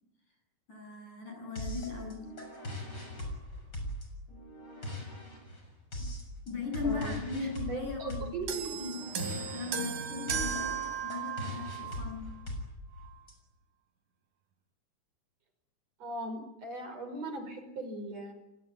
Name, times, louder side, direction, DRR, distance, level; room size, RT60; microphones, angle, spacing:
voice 1, 0.7-2.3 6.0-6.1 6.5-8.5 8.8-9.0 9.3-12.3, left 4 dB, 75° left, 2 dB, 9.5 m, -38 dB
sound 1, 1.6-13.3, left 1 dB, 30° left, 7.2 m, -41 dB
voice 2, 7.4-8.8 16.0-18.3, right 2 dB, 55° right, 6 dB, 6.4 m, -39 dB
sound 2, 8.5-12.1 13.0-13.1, right 7 dB, 80° right, 4.1 m, -36 dB
30.0 x 18.5 x 9.9 m, 0.94 s
omnidirectional pair, 3.5 m